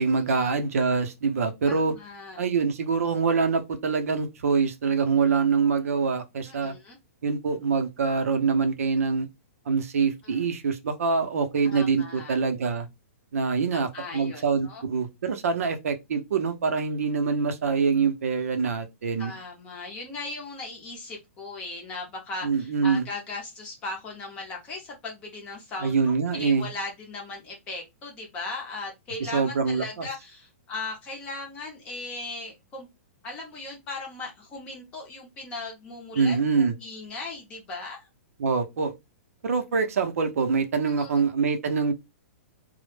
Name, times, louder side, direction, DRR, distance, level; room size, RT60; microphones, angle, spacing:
voice 1, 0.0-1.9 2.4-6.7 7.2-9.3 9.7-12.9 13.3-19.3 22.4-23.0 25.8-26.7 29.3-30.1 36.2-36.7 38.4-38.9 39.4-41.9, right 5 dB, 80° right, 0.6 m, -25 dB
voice 2, 1.6-2.4 6.5-7.0 10.2-10.5 11.6-12.4 13.7-14.8 19.2-32.9 33.2-38.1 41.0-41.3, left 3 dB, 15° left, 0.6 m, -38 dB
2.0 x 2.0 x 3.1 m
hypercardioid pair, 170°, 8 cm